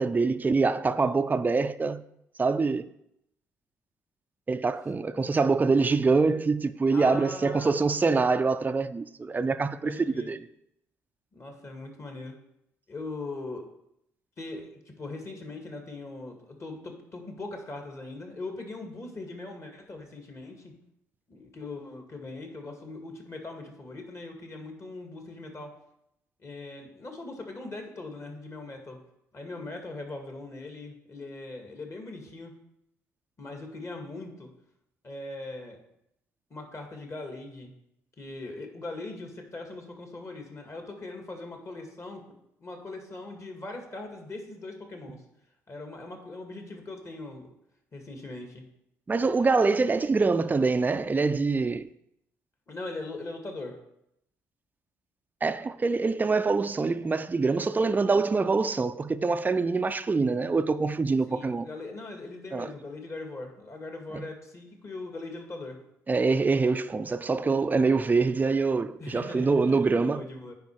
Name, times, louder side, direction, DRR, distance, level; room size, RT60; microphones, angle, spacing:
voice 1, 0.0-2.0 2.4-2.9 4.5-10.5 49.1-51.9 55.4-61.7 62.5-62.7 64.1-64.3 66.1-70.2, right 4 dB, 20° right, 0.5 m, -25 dB
voice 2, 6.9-7.8 9.8-10.3 11.3-12.4 12.9-13.7 14.4-20.7 21.3-25.7 26.4-29.0 29.3-32.5 33.4-34.5 35.0-35.8 36.5-37.7 38.2-45.2 45.7-47.5 47.9-48.7 52.7-53.8 61.3-65.8 69.0-70.5, left 2 dB, 35° left, 2.1 m, -40 dB
9.3 x 5.0 x 4.7 m
hypercardioid pair, 50°, 8 cm